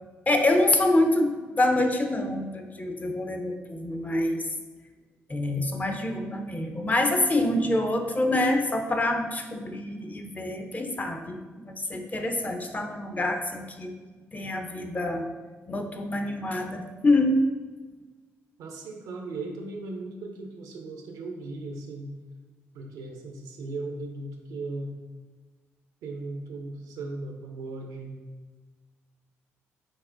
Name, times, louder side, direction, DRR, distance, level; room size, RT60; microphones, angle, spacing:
voice 1, 0.3-4.5 5.3-13.9 14.3-15.3 15.7-17.4, left 1 dB, 20° left, 5 dB, 0.5 m, -26 dB
voice 2, 18.6-22.1 22.7-25.0 26.0-28.2, right 2 dB, 65° right, 2 dB, 0.5 m, -37 dB
5.9 x 2.1 x 2.4 m, 1.3 s
hypercardioid pair, 45°, 7 cm